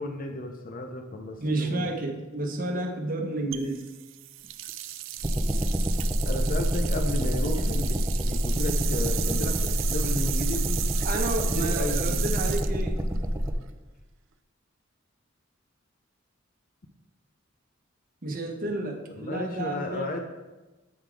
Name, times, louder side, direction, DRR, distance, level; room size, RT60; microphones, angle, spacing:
voice 1, 0.0-1.9 6.2-8.0 8.2-9.6 9.9-10.8 11.4-12.2 19.2-20.2, left 2 dB, 45° left, 4 dB, 0.6 m, -33 dB
voice 2, 1.4-3.8 11.0-13.0 18.2-20.2, right 2 dB, 45° right, 3 dB, 1.0 m, -31 dB
sound 1, 3.5-13.7, right 13 dB, 70° right, 0.4 m, -35 dB
sound 2, 5.2-13.5, equal, 10° right, 0.5 m, -27 dB
8.3 x 4.0 x 4.6 m, 1.1 s
head